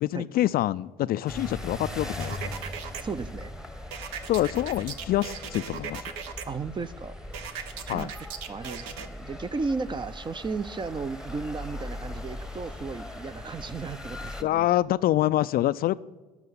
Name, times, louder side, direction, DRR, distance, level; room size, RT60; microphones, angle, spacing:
voice 1, 0.0-2.5 4.3-6.1 7.9-8.1 14.4-16.0, left 14 dB, 45° left, 0.4 m, -26 dB
sound 1, 1.3-14.4, left 1 dB, 5° right, 1.1 m, -40 dB
sound 2, 2.2-3.0 3.9-6.4 7.3-9.1, right 7 dB, 65° right, 0.9 m, -38 dB
voice 2, 3.0-3.5 6.5-7.1 7.9-8.1 8.5-14.7, right 4 dB, 20° right, 0.6 m, -34 dB
13.0 x 6.2 x 8.3 m
hypercardioid pair, 60°, 21 cm